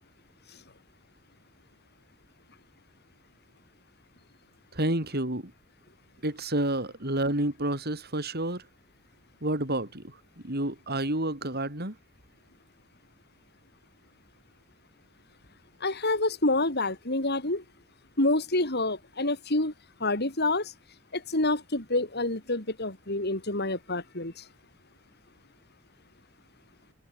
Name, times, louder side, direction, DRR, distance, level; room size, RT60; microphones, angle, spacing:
voice 1, 4.7-5.5 6.2-8.7 9.4-12.0, right 1 dB, 50° right, 6.3 m, -29 dB
voice 2, 15.8-17.6 18.2-19.7 20.0-20.7 21.1-24.4, left 2 dB, 50° left, 4.9 m, -27 dB
head